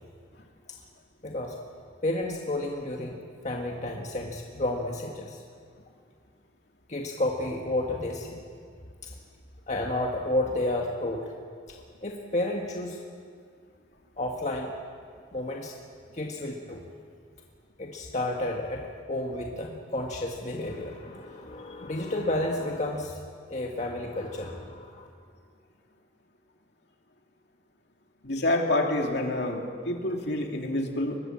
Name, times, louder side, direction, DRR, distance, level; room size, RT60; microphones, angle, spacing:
voice 1, 1.2-1.6 2.0-3.2 3.4-5.4 6.9-8.4 9.0-9.1 9.7-11.3 12.0-13.0 14.2-14.7 15.3-15.8 16.1-16.8 17.8-23.2 23.5-25.1, left 1 dB, 40° left, 0 dB, 1.8 m, -31 dB
voice 2, 28.2-31.2, left 1 dB, 65° left, 2 dB, 2.9 m, -27 dB
24.5 x 21.5 x 7.6 m, 2.1 s
head